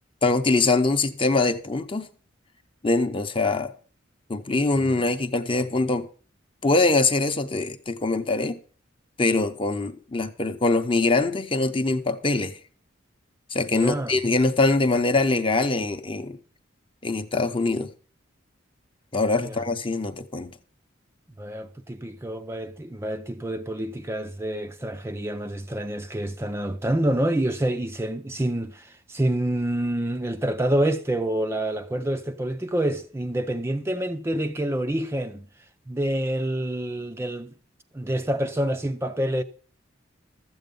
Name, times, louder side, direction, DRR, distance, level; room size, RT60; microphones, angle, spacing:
voice 1, 0.2-2.1 2.8-3.7 4.3-6.1 6.6-8.6 9.2-12.6 13.5-16.4 17.0-17.9 19.1-20.5, left 3 dB, 25° left, 0.7 m, -23 dB
voice 2, 13.7-14.1 19.4-19.6 21.4-35.5 35.9-37.5 37.9-39.4, right 1 dB, 15° right, 0.5 m, -27 dB
13.5 x 8.0 x 5.2 m
head